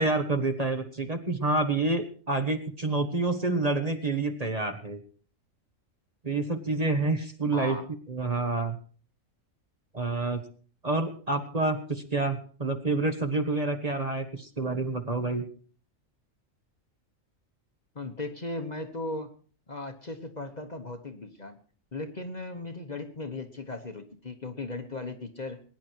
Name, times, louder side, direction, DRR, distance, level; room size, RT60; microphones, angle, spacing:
voice 1, 0.0-5.0 6.2-7.8 8.1-8.8 9.9-10.4 10.8-15.4, right 3 dB, 30° right, 6 dB, 1.4 m, -28 dB
voice 2, 7.5-7.9 17.9-19.3 19.7-21.6 21.9-25.6, left 2 dB, 35° left, 6 dB, 1.2 m, -37 dB
21.0 x 10.0 x 4.6 m, 0.42 s
omnidirectional pair, 1.3 m